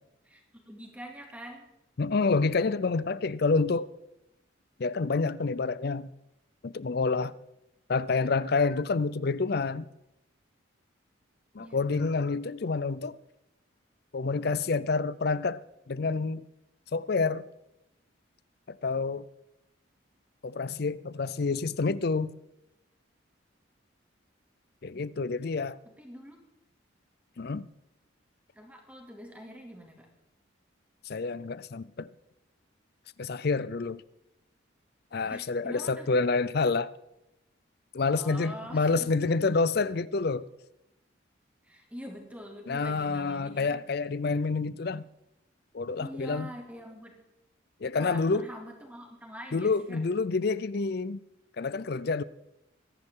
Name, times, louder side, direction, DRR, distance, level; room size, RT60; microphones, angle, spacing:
voice 1, 0.2-1.7 11.6-11.8 25.8-26.4 28.6-30.1 35.3-36.1 38.1-39.1 41.6-43.8 46.0-47.2 47.8-50.0, equal, 5° right, 2.4 m, -45 dB
voice 2, 2.0-3.9 4.8-6.1 6.6-7.3 7.9-9.9 11.5-13.2 14.1-16.4 16.9-17.5 18.7-19.3 20.4-22.4 24.8-25.8 27.4-27.7 31.1-32.1 33.2-34.0 35.1-36.9 37.9-40.5 42.7-45.0 45.7-46.5 47.8-48.5 49.5-51.2 51.6-52.2, left 4 dB, 50° left, 0.5 m, -28 dB
24.0 x 11.0 x 3.7 m
head